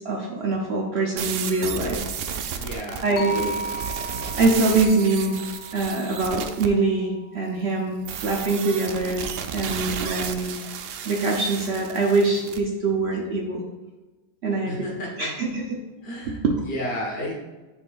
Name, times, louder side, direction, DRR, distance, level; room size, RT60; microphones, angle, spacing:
voice 1, 0.0-2.0 2.3-2.4 3.0-3.6 4.4-5.4 5.7-9.2 9.5-10.6 11.0-13.6 14.4-14.9 15.2-15.8 16.3-16.5, right 3 dB, 55° right, 0 dB, 0.9 m, -24 dB
sound 1, 1.2-6.7 8.0-12.6, right 7 dB, 85° right, 0.5 m, -33 dB
voice 2, 2.6-3.1 14.6-15.3 16.0-17.3, equal, 40° left, -2 dB, 1.6 m, -32 dB
sound 2, 3.2-7.4, right 2 dB, 90° left, 0.3 m, -35 dB
9.6 x 4.5 x 2.5 m, 1.2 s
omnidirectional pair, 1.6 m